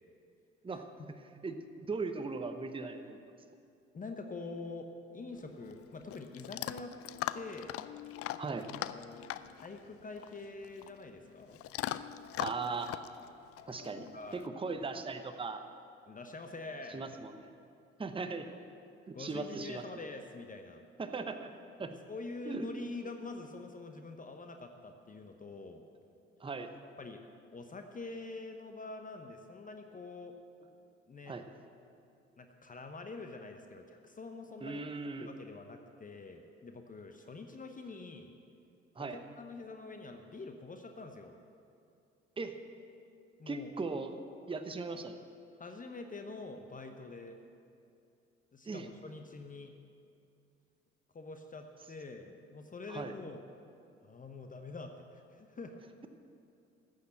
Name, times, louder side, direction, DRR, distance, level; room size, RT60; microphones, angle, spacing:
voice 1, 0.7-1.1 3.9-6.9 7.3-7.8 8.9-9.3 9.6-11.6 14.0-14.4 16.1-17.1 19.1-20.8 21.8-25.8 27.0-27.2 27.5-30.4 31.1-31.4 32.4-34.8 35.2-38.3 39.0-41.3 43.4-43.7 45.6-47.4 48.5-49.7 51.1-53.4 54.0-55.8, left 3 dB, 25° left, 5 dB, 0.9 m, -45 dB
voice 2, 1.4-3.2 8.4-8.7 12.4-12.9 13.7-15.6 16.9-17.5 18.0-18.5 19.1-19.8 21.0-21.5 21.8-22.0 22.5-22.7 26.4-26.7 31.3-31.5 34.6-35.3 38.9-39.2 42.4-42.6 43.5-44.1 44.5-45.2 48.6-48.9 52.9-53.1, right 4 dB, 15° right, 7 dB, 0.9 m, -38 dB
Chewing mastication / Dog, 5.3-14.5, left 13 dB, 45° left, 0.5 m, -42 dB
15.0 x 6.6 x 8.2 m, 2.5 s
figure-of-eight pair, 50°, 33 cm